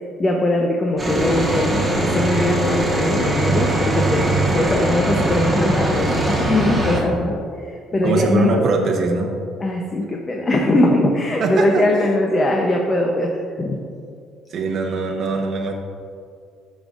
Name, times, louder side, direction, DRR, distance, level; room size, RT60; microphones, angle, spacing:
voice 1, 0.2-8.6 9.6-13.3 13.6-13.8, left 1 dB, 25° left, 0 dB, 0.7 m, -21 dB
sound 1, 1.0-7.0, right 1 dB, 10° right, 1.3 m, -21 dB
voice 2, 8.0-9.3 11.4-11.9 14.5-15.7, right 3 dB, 50° right, 1 dB, 0.8 m, -21 dB
13.0 x 5.3 x 2.5 m, 2.3 s
cardioid pair, 130°, 0 cm